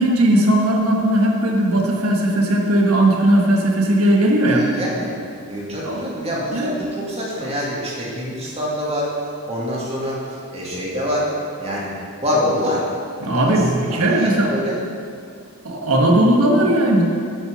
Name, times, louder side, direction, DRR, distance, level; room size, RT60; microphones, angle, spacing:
voice 1, 0.0-4.7 5.8-6.0 6.5-6.9 13.2-14.5 15.6-17.0, right 1 dB, 70° right, 0 dB, 1.4 m, -17 dB
voice 2, 4.5-5.1 5.5-9.1 9.5-12.9 13.3-13.5 13.9-14.8, equal, 30° right, -5 dB, 2.2 m, -25 dB
8.8 x 5.9 x 6.2 m, 2.3 s
head